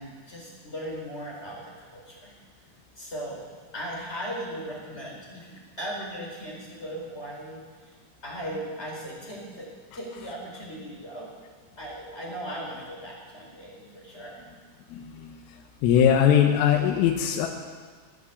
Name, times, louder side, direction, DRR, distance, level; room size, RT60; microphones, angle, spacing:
voice 1, 0.0-2.3 3.0-3.4 3.7-7.9 8.2-11.3 11.8-14.5, equal, 15° left, -4 dB, 4.0 m, -38 dB
voice 2, 15.8-17.5, left 9 dB, 85° left, 1 dB, 3.6 m, -20 dB
17.5 x 10.0 x 8.1 m, 1.5 s
omnidirectional pair, 5.9 m